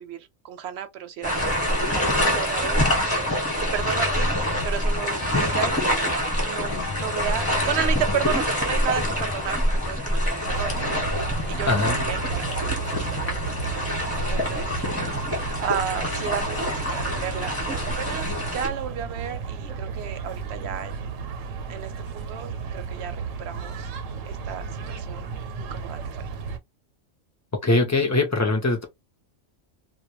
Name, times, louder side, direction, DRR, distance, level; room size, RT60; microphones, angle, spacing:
voice 1, 0.0-6.2 6.5-9.6 9.8-13.9 14.2-21.1 21.7-23.9 24.3-25.3 25.6-26.0, right 9 dB, 65° right, 0.7 m, -33 dB
sound 1, 1.2-18.7, equal, 10° left, 1.0 m, -26 dB
sound 2, 3.8-11.7, left 5 dB, 65° left, 0.8 m, -38 dB
sound 3, 10.4-26.6, right 5 dB, 90° right, 1.0 m, -33 dB
voice 2, 11.7-12.0 27.6-28.8, left 2 dB, 25° left, 0.3 m, -21 dB
2.2 x 2.1 x 2.9 m
omnidirectional pair, 1.3 m